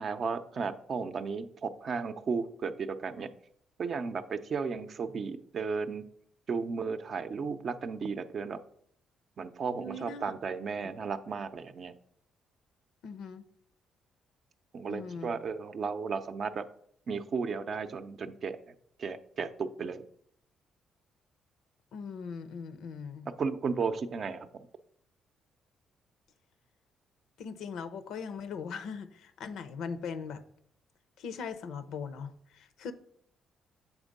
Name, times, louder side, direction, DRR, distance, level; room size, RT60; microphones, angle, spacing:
voice 1, 0.0-3.3 3.8-6.1 6.5-8.6 9.4-11.9 14.7-16.7 17.1-20.0 23.4-24.5, right 5 dB, 50° right, 10 dB, 0.5 m, -34 dB
voice 2, 9.8-10.3 13.0-13.4 14.9-15.4 21.9-23.3 27.4-30.4 31.2-32.9, left 5 dB, 80° left, 11 dB, 0.6 m, -40 dB
7.4 x 3.6 x 5.2 m, 0.66 s
cardioid pair, 90°, 0 cm